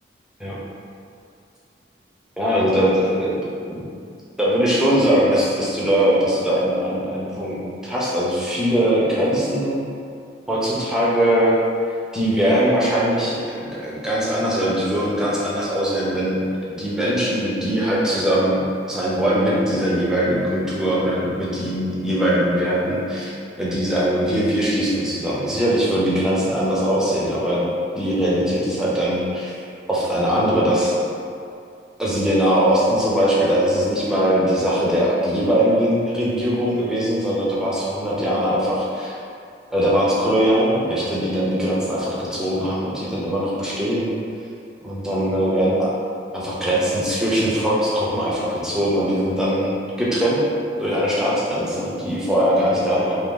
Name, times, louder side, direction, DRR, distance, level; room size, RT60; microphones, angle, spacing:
voice 1, 2.4-3.9 4.4-9.8 10.5-11.6 12.1-16.5 16.8-27.7 28.0-29.6 29.9-31.0 32.0-39.1 39.7-44.1 44.8-45.9 46.3-50.4 50.8-53.2, equal, 5° right, -7 dB, 0.5 m, -21 dB
2.8 x 2.6 x 3.7 m, 2.4 s
head